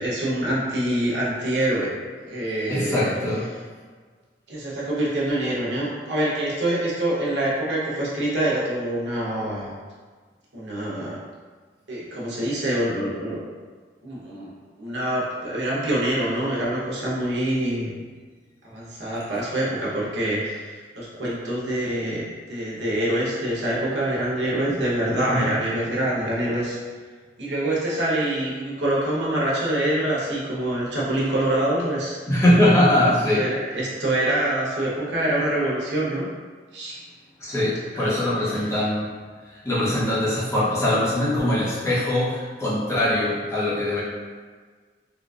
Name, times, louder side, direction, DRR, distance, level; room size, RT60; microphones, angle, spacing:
voice 1, 0.0-1.9 2.2-3.2 4.5-9.7 10.5-11.2 11.9-13.4 14.0-14.5 14.8-17.9 18.6-26.8 27.4-32.2 33.3-36.3 36.7-37.0 37.9-38.2 38.5-38.7, right 1 dB, 80° right, -6 dB, 0.9 m, -25 dB
voice 2, 2.7-3.5 24.7-24.8 25.3-25.5 32.3-33.5 37.4-39.1 39.6-44.0, left 1 dB, 15° left, -9 dB, 0.7 m, -22 dB
3.7 x 2.4 x 2.4 m, 1.5 s
head